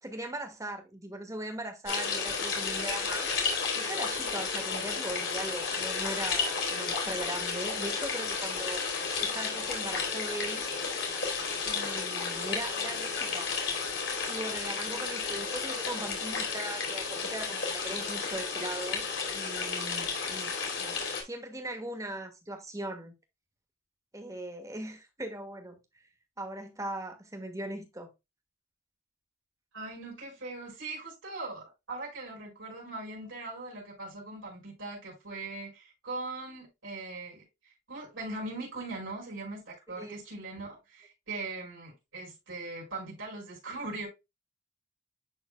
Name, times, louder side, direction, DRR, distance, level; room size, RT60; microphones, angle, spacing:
voice 1, 0.0-3.3 3.7-8.8 9.2-10.7 11.6-13.5 14.3-19.1 19.3-23.1 24.1-25.8 26.4-28.1 40.0-40.2, right 1 dB, 15° right, 1.5 m, -39 dB
sound 1, 1.9-21.2, left 5 dB, 60° left, 2.9 m, -32 dB
voice 2, 29.7-44.1, right 2 dB, 75° right, 4.3 m, -40 dB
11.0 x 3.9 x 2.2 m
head